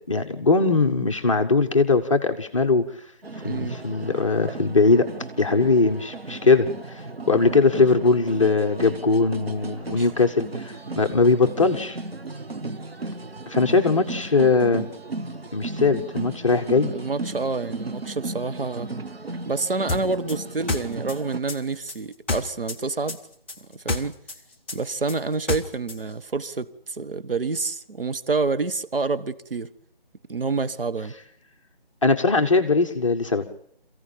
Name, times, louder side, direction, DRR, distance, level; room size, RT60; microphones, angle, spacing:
voice 1, 0.1-3.0 3.4-5.1 5.4-12.0 13.5-14.8 15.5-16.9 32.0-33.4, left 3 dB, 35° left, 1.1 m, -20 dB
sound 1, 3.2-21.4, right 2 dB, 85° right, 1.7 m, -35 dB
voice 2, 3.4-3.8 9.9-10.1 16.9-18.9 19.5-23.2 23.7-24.2 24.7-29.7 30.3-31.1, right 4 dB, 65° right, 1.3 m, -28 dB
sound 2, 19.9-22.8 23.1-26.0, left 3 dB, 10° left, 1.0 m, -29 dB
28.0 x 15.5 x 8.8 m
figure-of-eight pair, 165°, 30 cm